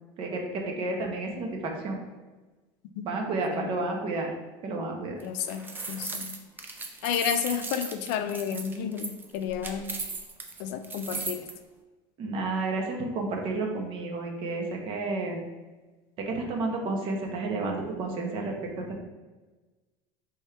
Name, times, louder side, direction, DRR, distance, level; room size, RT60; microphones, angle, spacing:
voice 1, 0.2-2.0 3.0-4.3 4.6-5.2 12.2-15.4 16.2-18.8, right 3 dB, 45° right, 1 dB, 0.9 m, -31 dB
voice 2, 5.2-5.6 5.9-6.3 7.0-9.9 10.6-11.4, left 8 dB, 70° left, 9 dB, 0.4 m, -31 dB
sound 1, 5.2-11.5, right 3 dB, 15° right, 0.5 m, -37 dB
4.4 x 3.5 x 3.3 m, 1.2 s
cardioid pair, 140°, 13 cm